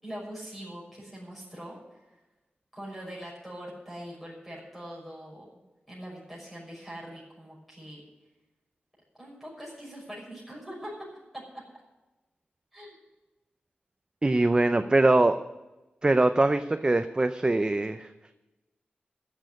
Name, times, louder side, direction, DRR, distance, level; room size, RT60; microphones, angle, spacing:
voice 1, 0.0-2.0 2.7-5.4 5.9-8.0 9.2-10.9 12.7-13.0, equal, ahead, -6 dB, 6.1 m, -42 dB
voice 2, 14.2-15.4 16.0-18.1, right 2 dB, 25° right, 9 dB, 0.5 m, -22 dB
14.5 x 6.5 x 9.7 m, 1.1 s
wide cardioid pair, 110°, 4 cm